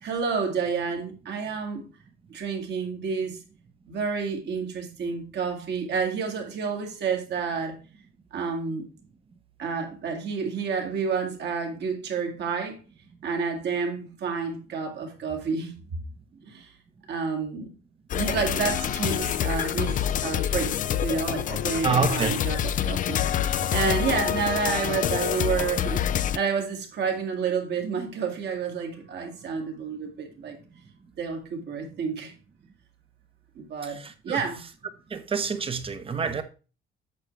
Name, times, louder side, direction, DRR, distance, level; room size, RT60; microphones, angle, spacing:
voice 1, 0.0-1.9 2.3-3.4 3.9-7.8 8.3-8.9 9.6-12.8 13.2-15.7 16.5-16.7 17.1-17.7 18.1-30.6 31.2-32.3 33.6-34.6, right 5 dB, 55° right, 2.1 m, -30 dB
sound 1, 18.1-26.4, left 10 dB, 40° left, 0.4 m, -27 dB
voice 2, 21.8-22.4 33.8-34.4 35.1-36.4, right 5 dB, 25° right, 0.8 m, -27 dB
8.4 x 6.6 x 3.2 m
cardioid pair, 130°, 21 cm